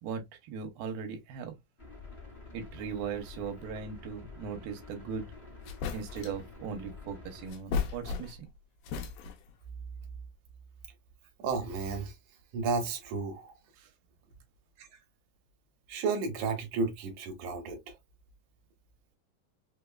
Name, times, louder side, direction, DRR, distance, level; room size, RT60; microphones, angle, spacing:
voice 1, 0.0-1.6 2.5-5.3 5.9-8.5 13.8-13.9, right 6 dB, 85° right, 2.6 m, -39 dB
sound 1, 1.8-7.5, left 3 dB, 30° left, 1.1 m, -48 dB
sound 2, 5.2-5.3 5.7-6.5 7.5-8.5 8.8-9.6, left 5 dB, 80° left, 2.4 m, -35 dB
voice 2, 11.4-12.1 12.5-13.5 14.8-14.9 15.9-17.9, right 4 dB, 65° right, 2.2 m, -32 dB
5.8 x 2.3 x 2.2 m
omnidirectional pair, 4.1 m